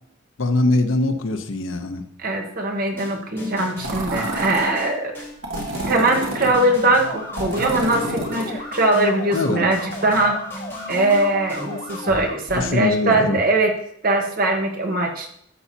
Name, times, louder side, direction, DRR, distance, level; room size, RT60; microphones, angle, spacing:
voice 1, 0.4-2.0 9.3-9.7 12.5-13.4, left 2 dB, 80° left, 7 dB, 0.8 m, -22 dB
voice 2, 2.2-5.1 5.9-10.4 10.9-13.7 14.0-15.3, right 2 dB, 50° right, 2 dB, 1.5 m, -21 dB
sound 1, 3.0-12.9, equal, 10° left, 2.6 m, -36 dB
sound 2, 3.8-4.7 5.4-6.5 7.4-8.6, right 1 dB, 90° right, 2.3 m, -29 dB
sound 3, 6.9-12.3, left 2 dB, 55° left, 1.3 m, -36 dB
12.5 x 7.0 x 2.8 m, 0.70 s
head